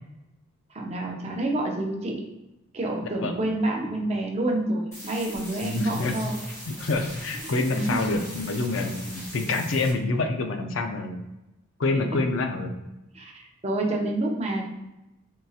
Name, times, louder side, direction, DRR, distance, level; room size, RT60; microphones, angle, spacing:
voice 1, 0.7-2.2 2.7-6.4 7.4-8.2 12.1-12.2 13.1-14.6, right 1 dB, 30° right, 0 dB, 0.5 m, -28 dB
sound 1, 4.9-9.9, equal, 15° left, 0.7 m, -41 dB
voice 2, 5.6-6.2 6.7-11.3 11.8-12.7, left 3 dB, 60° left, 5 dB, 0.4 m, -27 dB
3.7 x 2.7 x 2.4 m, 0.97 s
head